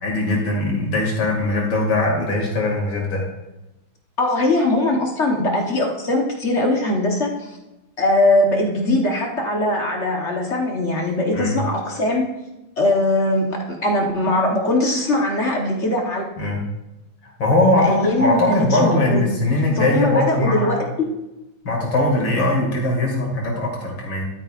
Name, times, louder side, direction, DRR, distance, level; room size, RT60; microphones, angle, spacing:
voice 1, 0.0-3.2 11.3-11.6 16.4-16.6 17.4-20.8 21.6-24.2, left 2 dB, 75° left, -1 dB, 3.0 m, -20 dB
voice 2, 4.2-7.5 8.0-12.2 12.8-16.3 17.7-19.3 19.7-21.1, left 1 dB, 40° left, 0 dB, 1.3 m, -21 dB
12.0 x 9.4 x 2.5 m, 0.96 s
omnidirectional pair, 2.1 m